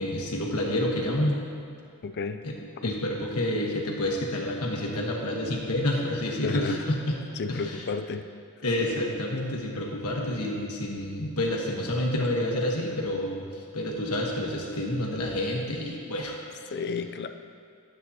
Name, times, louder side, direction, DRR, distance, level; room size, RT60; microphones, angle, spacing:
voice 1, 0.0-1.5 2.4-2.5 2.8-7.2 7.5-7.8 8.6-16.4, left 1 dB, 80° left, -1 dB, 1.3 m, -29 dB
voice 2, 2.0-2.4 2.8-2.9 6.4-6.8 7.4-8.2 9.7-9.9 16.7-17.3, left 5 dB, 50° left, 8 dB, 0.4 m, -32 dB
12.0 x 7.8 x 2.8 m, 2.3 s
head